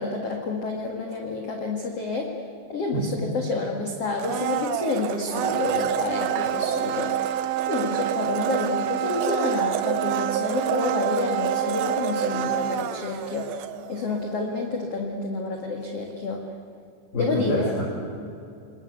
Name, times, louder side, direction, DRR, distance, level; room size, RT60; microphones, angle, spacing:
voice 1, 0.0-2.3 2.7-7.2 7.7-13.5 13.9-16.5 17.1-17.8, left 3 dB, 45° left, 1 dB, 2.4 m, -29 dB
voice 2, 2.9-3.3 17.1-17.8, left 1 dB, 20° left, -6 dB, 6.6 m, -27 dB
Domestic sounds home sounds, 4.2-14.1 14.4-14.5, right 11 dB, 70° right, 2.6 m, -27 dB
28.5 x 21.0 x 8.3 m, 2.6 s
omnidirectional pair, 5.1 m